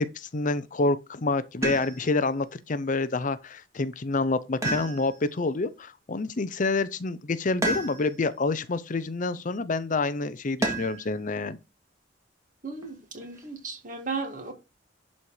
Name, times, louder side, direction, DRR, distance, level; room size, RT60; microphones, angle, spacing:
voice 1, 0.0-11.6, left 3 dB, 45° left, 0.6 m, -28 dB
sound 1, 1.6-2.3 4.6-5.4 7.6-8.3 10.6-11.1 12.8-13.5, right 1 dB, 15° right, 2.1 m, -31 dB
voice 2, 12.6-14.5, right 4 dB, 45° right, 2.2 m, -35 dB
11.5 x 4.3 x 4.9 m
head